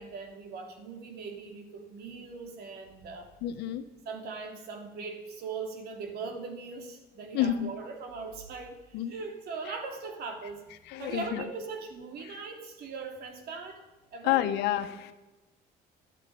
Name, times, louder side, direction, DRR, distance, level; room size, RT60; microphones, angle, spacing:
voice 1, 0.0-3.3 4.0-13.8 14.1-14.5, right 4 dB, 70° right, 4 dB, 3.0 m, -40 dB
voice 2, 3.4-3.8 7.3-7.7 8.9-9.1 9.7-9.8 10.9-11.4 12.2-12.3 14.2-15.1, left 12 dB, 85° left, 9 dB, 1.3 m, -29 dB
13.0 x 10.5 x 8.6 m, 1.1 s
cardioid pair, 110°, 17 cm